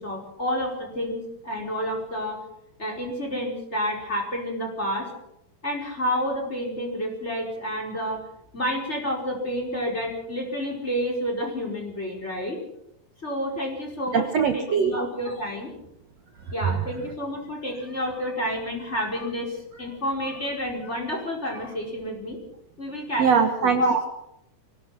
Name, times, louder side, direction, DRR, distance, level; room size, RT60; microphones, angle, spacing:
voice 1, 0.0-2.4 2.8-5.1 5.6-8.3 8.5-12.6 13.2-15.7 16.5-22.4 22.8-23.3 23.6-24.0, equal, 15° left, 0 dB, 5.2 m, -29 dB
voice 2, 14.1-15.0 16.6-16.8 23.2-23.8, right 6 dB, 55° right, 5 dB, 2.1 m, -21 dB
25.0 x 18.0 x 6.0 m, 0.81 s
omnidirectional pair, 4.1 m